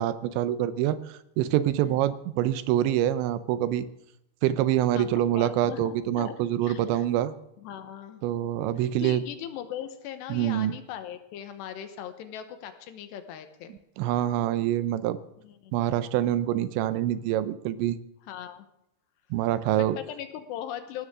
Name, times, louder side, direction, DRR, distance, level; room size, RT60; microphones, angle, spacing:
voice 1, 0.0-3.9 4.4-7.3 8.2-9.2 10.3-10.7 14.0-15.2 15.7-18.0 19.3-20.0, right 12 dB, 80° right, 14 dB, 2.9 m, -26 dB
voice 2, 5.4-6.4 6.6-7.1 7.6-8.2 8.8-13.8 15.4-15.7 18.3-18.7 19.8-21.1, left 10 dB, 75° left, 8 dB, 3.0 m, -39 dB
19.5 x 16.5 x 3.7 m, 0.81 s
omnidirectional pair, 5.3 m